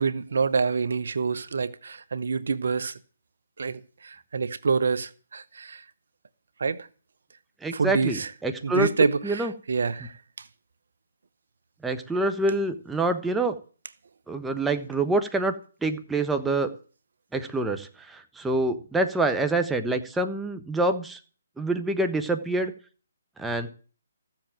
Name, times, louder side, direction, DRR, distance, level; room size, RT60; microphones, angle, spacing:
voice 1, 0.0-2.9 3.6-5.8 6.6-6.9 7.7-8.3 8.6-10.1, right 5 dB, 65° right, 1.0 m, -27 dB
voice 2, 7.6-8.9 9.2-9.5 11.8-13.6 14.3-15.5 15.8-16.7 17.3-21.2 21.6-22.7 23.4-23.7, right 2 dB, 5° right, 1.1 m, -26 dB
14.5 x 7.5 x 9.0 m
figure-of-eight pair, 145°, 0 cm